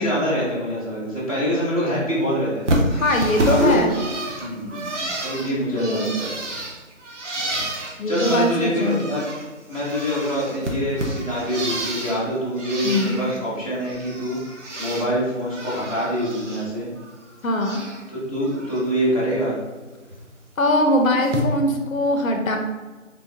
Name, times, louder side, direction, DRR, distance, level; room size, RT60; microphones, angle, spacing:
voice 1, 0.0-2.6 3.5-3.8 4.3-6.3 8.1-9.3 9.7-16.9 18.1-19.6, equal, 25° left, -10 dB, 0.7 m, -25 dB
Bird, 2.7-9.5 9.7-12.2 12.6-13.4 13.7-15.1 15.4-16.6 17.0-18.0 18.4-18.8 20.1-20.2 21.2-21.4, right 1 dB, 60° right, 0.7 m, -29 dB
voice 2, 2.9-3.9 5.8-6.1 8.0-9.0 12.8-13.2 17.4-17.8 20.6-22.6, left 1 dB, 85° left, 3 dB, 0.7 m, -21 dB
3.5 x 2.5 x 2.4 m, 1.3 s
figure-of-eight pair, 170°, 40 cm